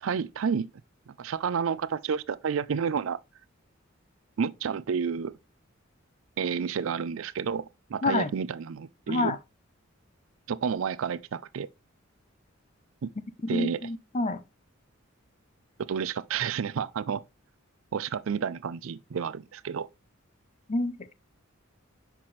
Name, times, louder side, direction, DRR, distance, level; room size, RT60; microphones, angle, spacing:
voice 1, 0.0-0.7 1.2-3.2 4.4-5.4 6.4-9.3 10.5-11.7 13.0-13.1 13.5-13.9 15.9-17.2 17.9-19.9, right 6 dB, 70° right, 0.4 m, -30 dB
voice 2, 13.4-14.4 20.7-21.1, left 2 dB, 35° left, 0.6 m, -28 dB
5.8 x 5.8 x 3.1 m
head